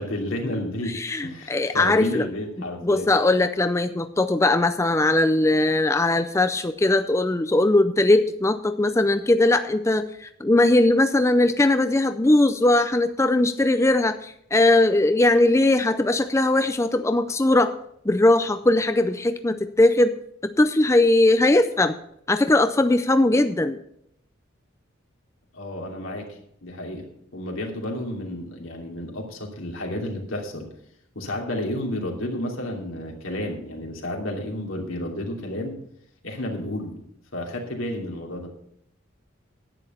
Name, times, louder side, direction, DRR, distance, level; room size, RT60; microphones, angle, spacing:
voice 1, 0.0-3.1 25.5-27.1 27.3-30.7 31.1-35.7 36.2-37.0 37.3-38.5, left 1 dB, 85° left, 0 dB, 2.8 m, -31 dB
voice 2, 0.9-2.3 2.8-17.7 18.1-20.1 20.4-22.0 22.3-23.8, left 2 dB, 15° left, 9 dB, 0.4 m, -20 dB
10.5 x 9.4 x 5.6 m, 0.71 s
head